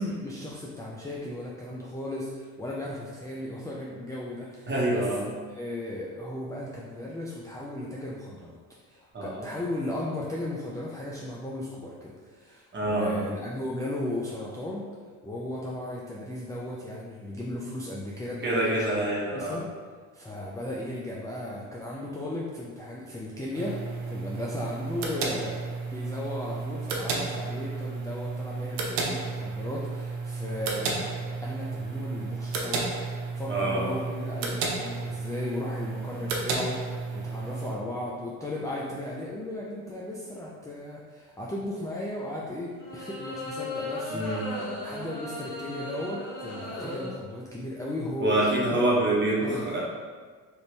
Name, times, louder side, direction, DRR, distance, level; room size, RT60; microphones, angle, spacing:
voice 1, 0.0-5.1 5.5-8.6 8.9-14.9 15.2-19.1 19.3-19.6 20.1-23.8 24.1-31.1 31.4-32.9 33.4-44.2 44.8-48.8 49.4-49.8, left 1 dB, 10° left, -5 dB, 0.4 m, -36 dB
voice 2, 4.7-5.3 9.1-9.5 12.7-13.1 18.4-19.6 33.5-33.9 44.1-44.5 48.2-49.8, right 1 dB, 30° right, -5 dB, 1.2 m, -26 dB
sound 1, 23.5-37.8, right 4 dB, 90° right, 0.6 m, -33 dB
sound 2, 36.1-36.3 42.8-47.1, left 2 dB, 40° left, 1.4 m, -36 dB
2.9 x 2.6 x 3.3 m, 1.5 s
supercardioid pair, 70°, 37 cm